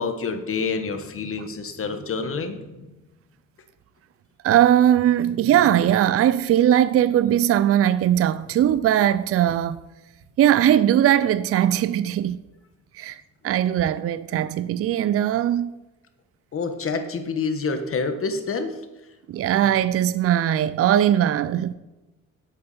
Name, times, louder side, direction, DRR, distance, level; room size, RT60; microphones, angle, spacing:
voice 1, 0.0-2.9 16.5-18.8, left 4 dB, 45° left, 1.4 m, -27 dB
voice 2, 4.4-9.8 10.4-12.4 12.9-15.8 19.3-21.7, right 11 dB, 50° right, 0.5 m, -20 dB
10.5 x 8.1 x 4.3 m
cardioid pair, 90°, 30 cm